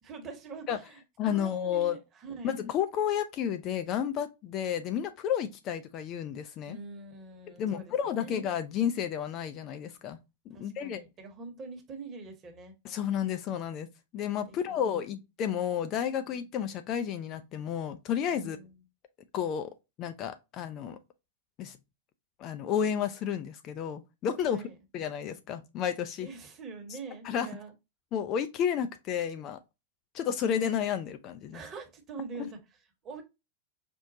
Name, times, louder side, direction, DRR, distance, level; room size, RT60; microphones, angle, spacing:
voice 1, 0.0-1.0 1.3-2.5 6.7-8.3 10.5-12.7 14.5-14.9 18.3-18.8 24.5-24.7 26.2-27.7 31.5-32.6 33.0-33.2, right 4 dB, 30° right, 1.0 m, -44 dB
voice 2, 1.2-2.0 2.4-6.8 7.6-10.2 10.5-11.0 12.8-18.6 19.3-19.7 20.0-21.0 21.6-21.8 22.4-24.6 24.9-26.3 27.2-27.6 28.1-29.6 30.1-31.6 32.4-32.5, left 8 dB, 35° left, 0.4 m, -31 dB
5.1 x 2.1 x 2.7 m
figure-of-eight pair, 90°, 0 cm